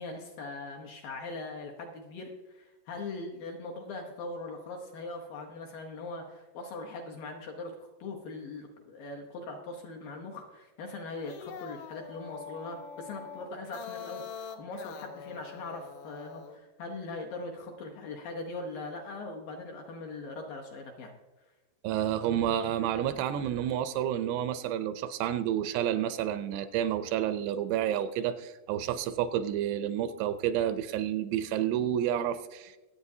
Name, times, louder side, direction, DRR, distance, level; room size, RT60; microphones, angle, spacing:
voice 1, 0.0-21.2, left 3 dB, 70° left, 1 dB, 2.3 m, -41 dB
sound 1, 11.1-16.6, left 7 dB, 90° left, 1.8 m, -44 dB
voice 2, 21.8-32.8, right 10 dB, 80° right, 11 dB, 2.6 m, -30 dB
24.0 x 8.3 x 2.7 m, 1.2 s
omnidirectional pair, 5.0 m